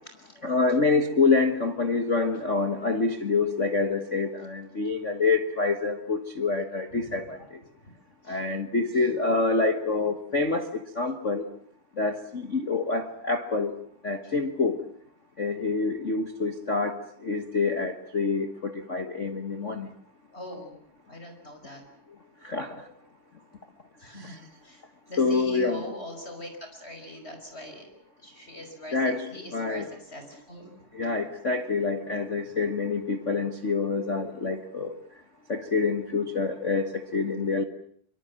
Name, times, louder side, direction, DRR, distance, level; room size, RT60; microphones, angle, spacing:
voice 1, 0.4-7.4 8.3-10.7 11.0-11.4 12.0-13.7 14.0-14.8 15.4-19.9 22.4-22.7 24.2-24.3 25.2-25.8 28.9-29.9 30.9-34.9 35.5-37.6, left 4 dB, 60° left, 6 dB, 0.7 m, -26 dB
voice 2, 20.3-20.8 21.1-21.8 24.0-24.8 25.1-27.9 28.2-31.1 32.4-32.5, left 1 dB, 20° left, 5 dB, 5.5 m, -42 dB
25.0 x 25.0 x 7.4 m, 0.63 s
omnidirectional pair, 3.7 m